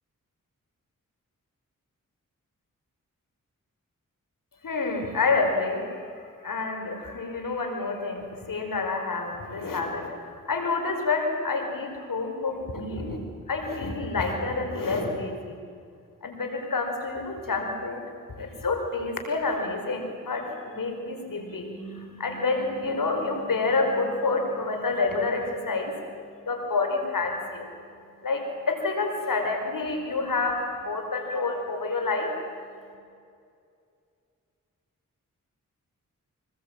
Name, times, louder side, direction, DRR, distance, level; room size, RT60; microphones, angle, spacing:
voice 1, 4.6-5.9 6.4-13.2 13.5-15.6 16.2-18.0 18.4-27.7 28.2-32.4, left 3 dB, 75° left, 4 dB, 5.2 m, -28 dB
25.0 x 21.5 x 9.0 m, 2.4 s
cardioid pair, 40°, 33 cm